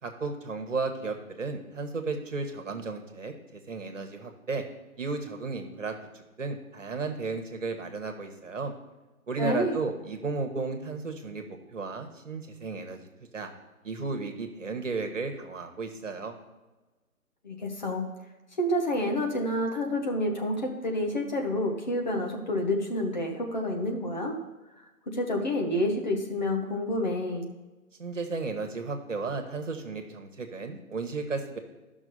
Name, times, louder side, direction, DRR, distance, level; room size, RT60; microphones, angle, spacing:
voice 1, 0.0-4.6 5.0-8.7 9.3-13.0 13.3-13.5 13.8-16.3 28.0-31.6, right 3 dB, 55° right, 5 dB, 1.6 m, -34 dB
voice 2, 9.4-9.8 17.4-18.0 18.6-24.4 24.8-27.5, left 1 dB, 30° left, 1 dB, 1.1 m, -29 dB
12.5 x 6.0 x 4.1 m, 1.1 s
figure-of-eight pair, 150°, 44 cm